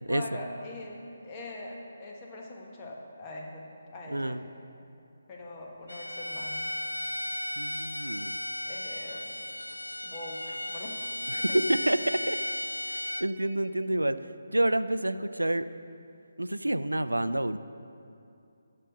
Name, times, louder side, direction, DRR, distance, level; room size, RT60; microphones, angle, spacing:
voice 1, 0.1-4.4 5.3-6.8 8.6-9.3 10.0-11.0 11.5-11.6, left 2 dB, 25° left, -2 dB, 1.2 m, -42 dB
voice 2, 4.1-4.4 7.6-8.4 11.3-12.4 13.2-14.2 14.5-15.6 16.4-17.6, right 1 dB, 90° right, 13 dB, 0.3 m, -28 dB
Bowed string instrument, 5.9-13.3, left 1 dB, 90° left, 0.3 m, -35 dB
7.4 x 6.4 x 6.3 m, 2.6 s
figure-of-eight pair, 150°, 0 cm